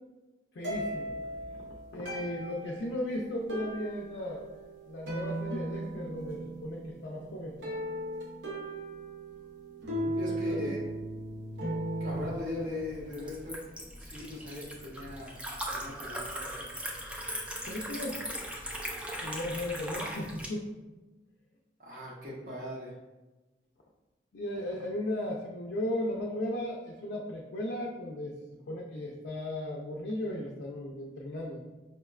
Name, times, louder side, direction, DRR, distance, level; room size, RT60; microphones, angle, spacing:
voice 1, 0.5-1.2 1.9-4.5 4.9-7.6 10.1-10.7 17.7-18.2 19.2-20.7 24.3-28.4 28.7-31.6, left 1 dB, 80° left, -2 dB, 0.4 m, -36 dB
sound 1, 0.6-12.3, right 1 dB, 90° right, 0.7 m, -37 dB
voice 2, 10.2-10.8 12.0-13.6 14.0-15.4 15.7-16.7 21.8-22.9, left 2 dB, 50° right, -6 dB, 0.7 m, -39 dB
Liquid, 12.1-20.5, equal, 5° right, 0.3 m, -39 dB
4.9 x 2.1 x 2.3 m, 1.2 s
head